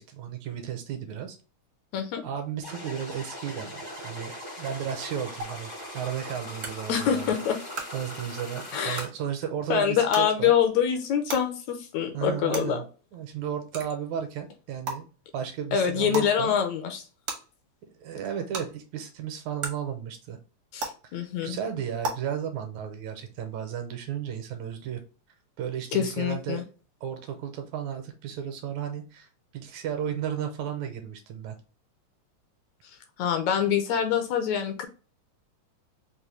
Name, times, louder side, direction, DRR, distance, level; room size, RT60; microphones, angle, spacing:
voice 1, 0.0-1.4 2.2-7.4 7.9-10.5 12.1-12.8 13.1-15.1 15.3-16.6 18.0-20.4 21.1-25.0 25.6-26.6 27.0-29.3 29.5-31.6, right 9 dB, 80° right, 6 dB, 2.0 m, -34 dB
sound 1, 2.6-9.1, left 1 dB, 60° left, 0.5 m, -40 dB
sound 2, 5.4-5.5 6.6-6.7 7.7-7.8 8.9-9.0 10.1-10.2 11.3-11.4 12.5-12.6 13.7-13.8 14.8-14.9 16.1-16.3 17.2-17.3 18.5-18.6 19.6-19.7 20.8-20.9 22.0-22.1, right 3 dB, 65° right, 0.9 m, -31 dB
voice 2, 6.9-7.6 8.7-9.0 9.7-12.8 15.7-17.0 20.7-21.6 25.9-26.6 33.2-34.9, left 8 dB, 80° left, 6 dB, 1.8 m, -25 dB
5.3 x 2.2 x 3.1 m, 0.35 s
omnidirectional pair, 3.4 m